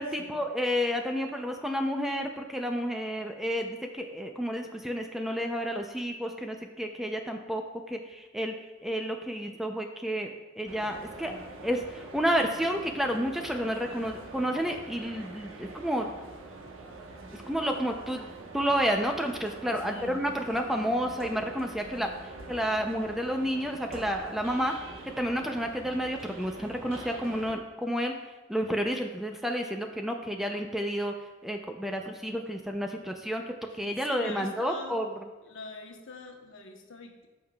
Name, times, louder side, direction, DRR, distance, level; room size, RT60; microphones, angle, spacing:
voice 1, 0.0-7.6 7.9-8.5 8.8-11.3 11.6-16.1 17.5-22.1 22.5-24.7 25.2-28.1 28.5-31.1 31.4-33.4 33.7-35.1, equal, ahead, 3 dB, 0.5 m, -30 dB
sound 1, 10.7-27.6, right 3 dB, 85° right, 1.1 m, -45 dB
voice 2, 19.8-20.2 33.7-35.0 35.4-37.3, left 3 dB, 65° left, 3 dB, 1.1 m, -44 dB
13.5 x 5.6 x 2.3 m, 1.2 s
head